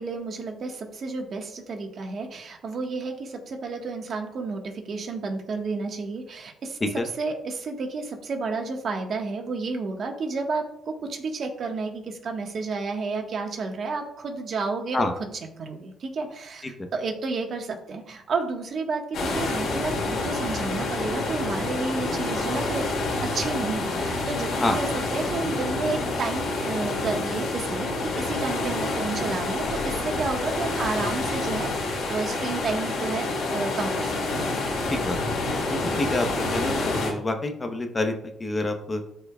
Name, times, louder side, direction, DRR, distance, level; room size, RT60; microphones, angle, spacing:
voice 1, 0.0-6.8 7.2-15.1 15.6-16.6 16.9-22.9 23.2-34.5, right 4 dB, 55° right, 2 dB, 1.5 m, -31 dB
sound 1, 19.1-37.1, left 2 dB, 75° left, 2.3 m, -28 dB
voice 2, 35.7-36.3 36.5-38.1 38.4-39.0, left 2 dB, 25° left, 5 dB, 1.0 m, -27 dB
13.0 x 4.8 x 2.4 m, 0.75 s
cardioid pair, 90°, 0 cm